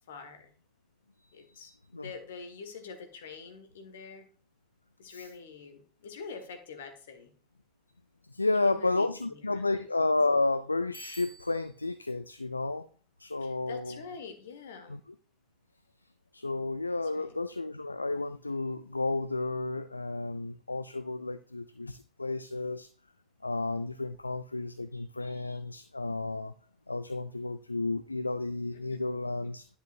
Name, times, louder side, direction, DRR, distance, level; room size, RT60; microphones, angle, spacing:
voice 1, 0.1-0.5 1.3-4.3 5.0-7.3 8.5-9.6 13.4-15.0 17.0-17.4 28.9-29.0, left 5 dB, 70° left, 6 dB, 1.7 m, -45 dB
voice 2, 8.3-12.9 13.2-14.0 14.9-15.0 16.3-22.9 23.4-26.5 26.9-29.7, left 2 dB, 90° left, 13 dB, 0.3 m, -31 dB
Bicycle bell, 10.9-11.9, right 1 dB, 5° right, 3.5 m, -50 dB
10.5 x 6.8 x 2.6 m, 0.43 s
figure-of-eight pair, 70°, 0 cm